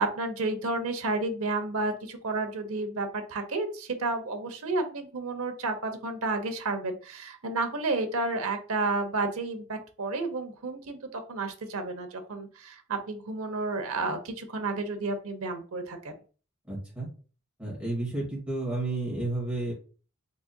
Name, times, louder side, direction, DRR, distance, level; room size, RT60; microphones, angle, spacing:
voice 1, 0.0-16.1, right 3 dB, 80° right, 6 dB, 0.8 m, -31 dB
voice 2, 16.7-17.1 17.6-19.7, right 2 dB, 5° right, -6 dB, 1.9 m, -31 dB
4.0 x 3.6 x 2.2 m, 0.38 s
head